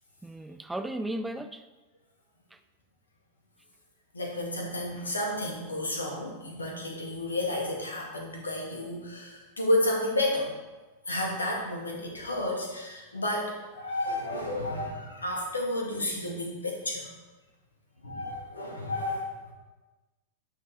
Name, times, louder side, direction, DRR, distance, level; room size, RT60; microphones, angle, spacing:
voice 1, 0.2-1.6 2.5-2.6, right 1 dB, 5° right, 9 dB, 0.6 m, -35 dB
voice 2, 4.1-10.5 11.1-17.1 18.0-19.5, left 1 dB, 75° left, 0 dB, 2.4 m, -31 dB
11.5 x 6.7 x 4.5 m, 1.2 s
figure-of-eight pair, 90°, 0 cm